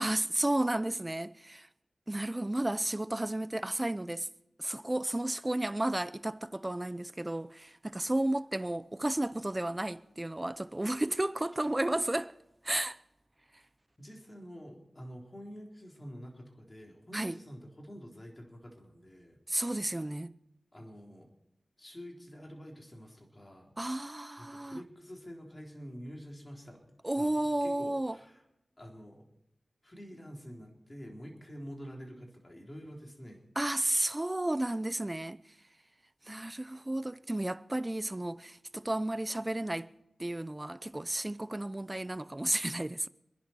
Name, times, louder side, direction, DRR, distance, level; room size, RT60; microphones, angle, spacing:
voice 1, 0.0-1.7 2.1-4.3 4.6-12.3 12.6-13.0 17.1-17.4 19.5-20.3 23.8-24.8 27.0-28.2 33.6-35.4 36.3-39.9 40.2-43.1, right 1 dB, 25° right, 0.6 m, -32 dB
voice 2, 14.0-19.4 20.7-21.3 21.8-23.7 24.4-28.4 28.8-29.3 29.8-33.4, equal, 35° left, 3.9 m, -47 dB
26.5 x 11.0 x 4.6 m
cardioid pair, 50°, 0 cm